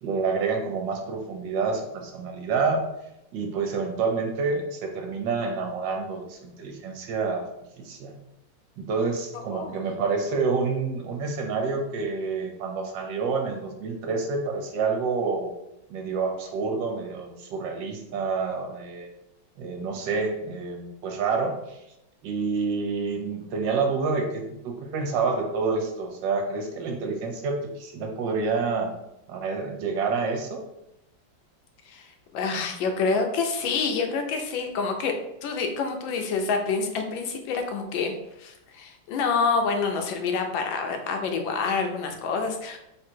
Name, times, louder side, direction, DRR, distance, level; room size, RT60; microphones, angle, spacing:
voice 1, 0.0-2.9 3.3-7.5 7.8-8.2 8.8-15.5 15.9-19.1 19.6-21.8 22.2-28.9 29.3-30.6, right 4 dB, 75° right, 3 dB, 1.4 m, -28 dB
voice 2, 32.3-35.1 35.4-38.1 38.4-42.8, left 4 dB, 85° left, 4 dB, 1.4 m, -27 dB
3.8 x 2.7 x 4.4 m, 0.85 s
omnidirectional pair, 2.0 m